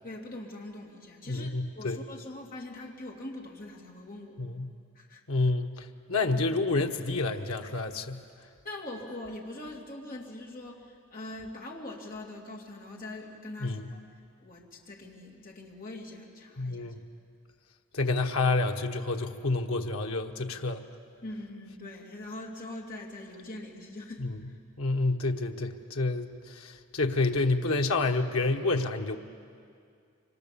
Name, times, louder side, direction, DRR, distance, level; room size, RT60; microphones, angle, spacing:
voice 1, 0.0-4.4 4.9-5.2 8.6-14.0 14.4-16.9 21.2-24.6, left 1 dB, 40° left, -1 dB, 3.0 m, -42 dB
voice 2, 1.3-2.0 4.4-4.7 5.3-8.2 13.6-13.9 16.6-17.0 17.9-20.9 24.2-24.3 24.8-29.2, left 3 dB, 90° left, 4 dB, 1.2 m, -29 dB
26.0 x 24.5 x 7.0 m, 2.3 s
head